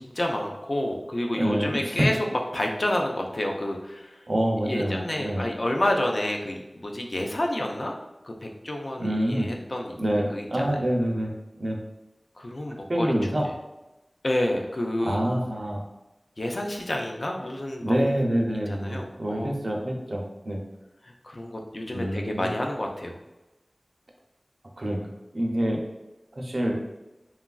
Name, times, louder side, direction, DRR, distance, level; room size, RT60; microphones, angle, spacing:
voice 1, 0.0-4.2 4.6-8.0 8.2-9.9 10.3-10.8 12.4-13.1 14.2-15.3 16.4-18.0 18.7-19.5 21.0-23.1, left 1 dB, 70° left, 1 dB, 0.4 m, -29 dB
voice 2, 1.3-1.9 4.3-5.4 9.0-9.5 10.0-11.3 11.6-11.8 12.9-13.4 15.0-15.9 17.8-20.6 21.9-22.5 24.8-25.0 25.3-25.8 26.4-26.8, right 1 dB, 75° right, 0 dB, 0.5 m, -26 dB
3.0 x 2.4 x 2.3 m, 1.0 s
wide cardioid pair, 40°, 0 cm